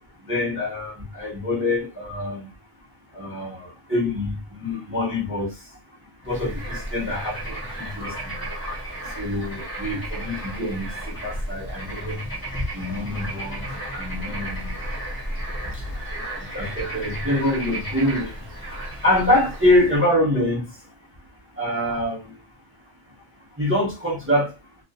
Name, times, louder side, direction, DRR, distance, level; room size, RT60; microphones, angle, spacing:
voice 1, 0.2-2.5 3.1-5.7 6.2-8.5 9.0-12.3 12.5-20.9 21.5-22.4 23.6-24.5, left 1 dB, 10° right, 0.8 m, -26 dB
Bird / Frog, 6.2-20.0, right 1 dB, 20° left, 0.9 m, -33 dB
2.3 x 2.2 x 2.7 m
omnidirectional pair, 1.2 m